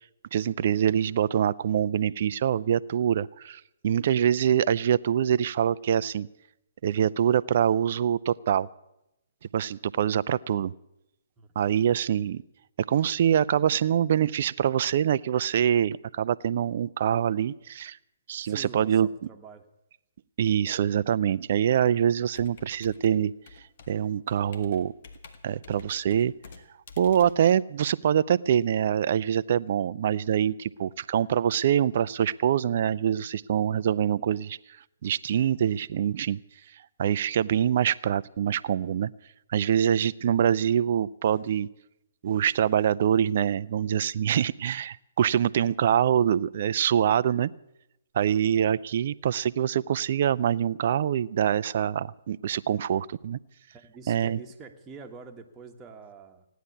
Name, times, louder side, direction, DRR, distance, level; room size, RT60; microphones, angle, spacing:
voice 1, 0.3-6.3 6.8-8.7 9.5-10.7 11.6-12.4 12.9-18.0 18.3-19.1 20.4-23.3 23.9-24.9 25.4-26.3 27.0-34.6 35.0-36.4 37.0-39.1 39.5-41.7 42.2-47.5 48.1-53.4 54.1-54.4, right 9 dB, 50° right, 19 dB, 0.5 m, -25 dB
voice 2, 18.4-19.6 48.2-48.6 53.7-56.5, right 5 dB, 15° right, 3 dB, 1.5 m, -46 dB
Computer keyboard, 22.3-28.3, left 4 dB, 50° left, 1.7 m, -50 dB
16.0 x 10.5 x 8.4 m, 0.88 s
figure-of-eight pair, 130°, 0 cm